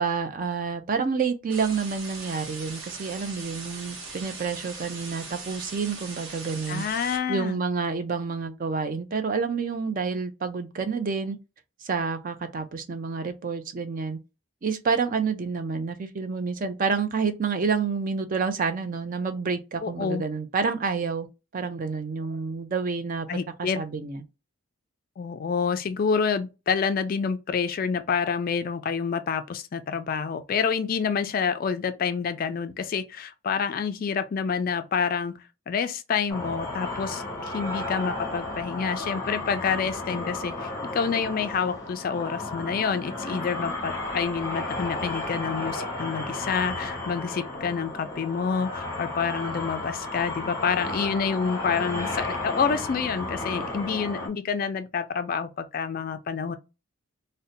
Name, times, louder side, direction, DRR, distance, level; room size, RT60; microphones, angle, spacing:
voice 1, 0.0-6.8 7.3-11.4 11.8-14.2 14.6-21.3 21.5-23.3 23.6-24.2, right 5 dB, 40° right, 0.4 m, -28 dB
sound 1, 1.5-7.2, right 4 dB, 65° right, 0.9 m, -40 dB
voice 2, 6.7-7.6 19.8-20.2 23.3-23.8 25.2-35.3 35.7-56.6, left 6 dB, 40° left, 0.3 m, -28 dB
sound 2, 36.3-54.3, left 2 dB, 15° left, 0.9 m, -33 dB
2.6 x 2.1 x 3.9 m
head